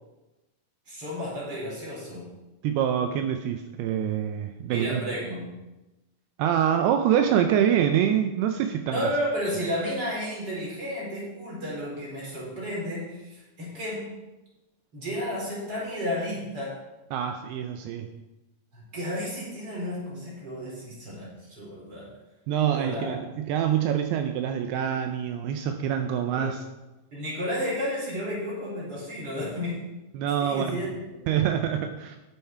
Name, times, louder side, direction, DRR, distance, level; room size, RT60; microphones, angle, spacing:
voice 1, 0.9-2.3 4.7-5.5 8.9-14.1 14.9-16.8 18.7-22.1 22.7-23.2 26.3-26.5 27.1-29.9 30.4-31.2, equal, 25° right, -5 dB, 4.5 m, -32 dB
voice 2, 2.6-5.0 6.4-9.0 17.1-18.1 22.5-26.6 30.1-30.8 31.3-32.2, right 9 dB, 85° right, 6 dB, 2.6 m, -25 dB
10.5 x 9.1 x 4.5 m, 1.0 s
omnidirectional pair, 4.6 m